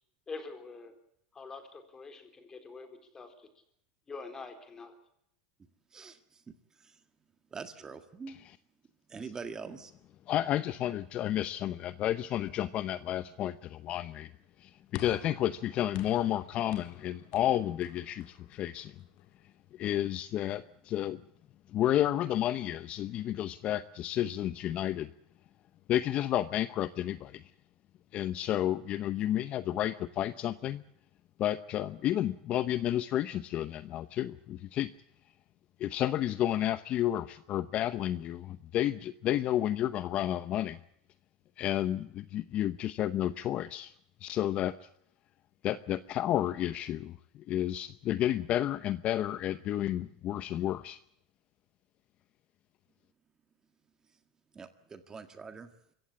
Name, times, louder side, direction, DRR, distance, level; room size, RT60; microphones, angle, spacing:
voice 1, 0.3-0.9 1.3-3.5 4.1-4.9, left 4 dB, 20° left, 7 dB, 3.8 m, -45 dB
voice 2, 7.5-8.4 9.1-9.9 54.6-55.7, right 5 dB, 20° right, 9 dB, 1.7 m, -43 dB
voice 3, 10.3-14.3 14.6-18.9 19.7-21.2 21.7-25.1 25.9-27.4 28.1-30.8 31.4-34.9 35.8-40.8 41.6-43.9 44.2-44.9 45.6-51.0, left 12 dB, 40° left, 14 dB, 0.7 m, -31 dB
sound 1, 14.9-19.4, left 12 dB, 60° left, 2.0 m, -49 dB
25.0 x 15.5 x 8.3 m, 0.76 s
supercardioid pair, 130°, 3 cm